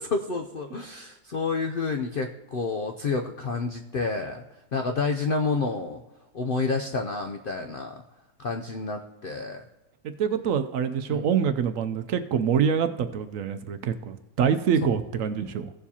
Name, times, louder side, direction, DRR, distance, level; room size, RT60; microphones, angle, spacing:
voice 1, 0.0-4.4 4.7-6.0 6.3-8.0 8.4-9.6 11.1-11.3, left 4 dB, 65° left, 5 dB, 0.5 m, -29 dB
voice 2, 10.2-15.7, right 7 dB, 70° right, 9 dB, 0.9 m, -25 dB
16.0 x 7.1 x 2.8 m, 1.0 s
omnidirectional pair, 1.6 m